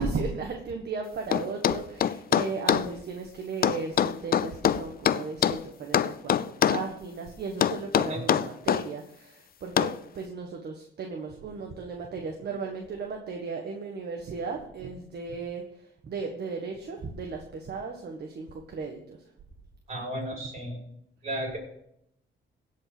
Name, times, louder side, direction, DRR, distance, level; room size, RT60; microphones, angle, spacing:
voice 1, 0.0-6.4 6.7-19.2, right 4 dB, 55° right, 2 dB, 1.6 m, -35 dB
sound 1, 1.3-2.9 3.6-5.6 5.9-6.9 7.6-8.9 9.8-10.0, left 9 dB, 50° left, 0.6 m, -24 dB
voice 2, 19.9-20.8 21.2-21.6, equal, 35° right, -1 dB, 6.0 m, -34 dB
16.5 x 5.5 x 6.1 m, 0.78 s
cardioid pair, 90°, 20 cm